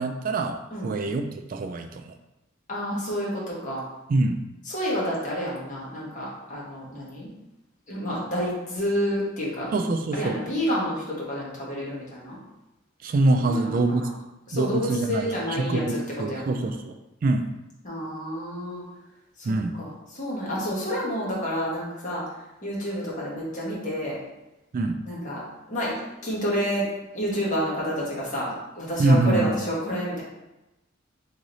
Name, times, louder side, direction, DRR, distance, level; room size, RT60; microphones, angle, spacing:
voice 1, 0.0-2.1 4.1-4.5 9.7-10.4 13.0-14.1 14.5-17.0 17.2-17.5 19.4-19.8 24.7-25.0 29.0-29.5, right 2 dB, 45° right, 6 dB, 0.3 m, -24 dB
voice 2, 2.7-3.9 4.6-7.3 7.9-9.7 10.1-12.4 13.4-14.1 14.5-16.0 16.3-16.7 17.8-18.8 19.4-22.3 22.6-24.2 25.0-25.4 25.7-26.9 27.1-30.2, equal, 40° left, -5 dB, 1.5 m, -29 dB
3.7 x 3.2 x 4.0 m, 0.97 s
head